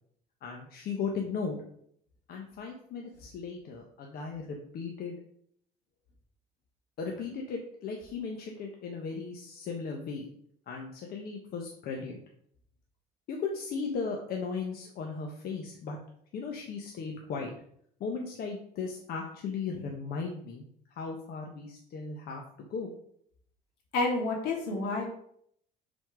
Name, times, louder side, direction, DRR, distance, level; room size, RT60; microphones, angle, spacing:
voice 1, 0.4-1.6 2.3-5.2 7.0-10.3 10.7-12.2 13.3-16.0 16.3-17.5 18.0-20.6 20.9-22.4 22.7-22.9, left 5 dB, 65° left, 1 dB, 1.1 m, -36 dB
voice 2, 23.9-25.0, left 2 dB, 85° left, 0 dB, 2.5 m, -29 dB
6.3 x 4.3 x 5.0 m, 0.66 s
cardioid pair, 110°, 17 cm